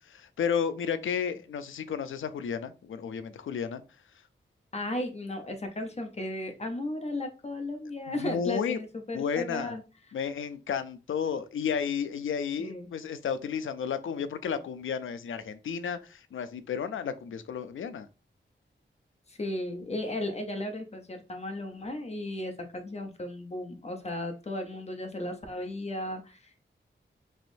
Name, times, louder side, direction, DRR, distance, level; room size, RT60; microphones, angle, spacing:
voice 1, 0.1-3.8 8.2-8.8 9.1-9.8 10.1-18.1, left 7 dB, 90° left, 0.4 m, -32 dB
voice 2, 4.7-9.8 12.6-12.9 19.3-26.6, left 1 dB, 35° left, 0.6 m, -35 dB
3.4 x 3.0 x 2.6 m
wide cardioid pair, 120°, 20 cm